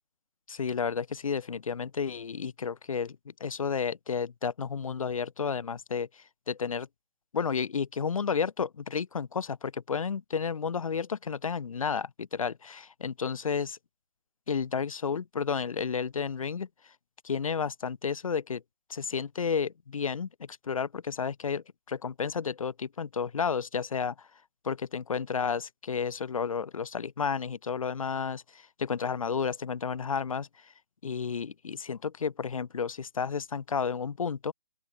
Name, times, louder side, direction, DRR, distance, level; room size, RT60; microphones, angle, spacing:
voice 1, 0.5-3.2 3.4-6.1 6.5-6.9 7.3-13.8 14.5-16.7 17.2-18.6 18.9-20.3 20.7-24.1 24.6-28.4 28.8-30.5 31.0-34.5, left 6 dB, 70° left, 0.7 m, -31 dB
open air
hypercardioid pair, 165°, 18 cm